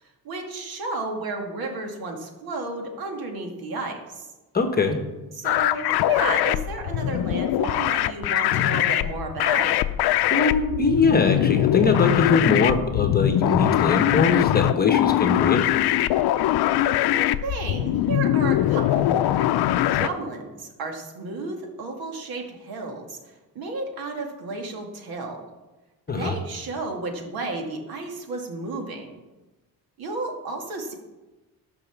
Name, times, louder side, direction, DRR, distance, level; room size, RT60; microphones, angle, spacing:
voice 1, 0.2-4.3 5.3-9.7 17.1-19.5 19.9-25.4 26.1-29.1 30.0-30.9, right 3 dB, 65° right, 3 dB, 2.3 m, -32 dB
voice 2, 4.5-5.0 10.3-15.6 26.1-26.3, left 4 dB, 25° left, 6 dB, 1.1 m, -22 dB
sound 1, 5.4-20.1, left 13 dB, 75° left, 0.6 m, -22 dB
14.0 x 6.1 x 7.2 m, 1.1 s
cardioid pair, 170°, 38 cm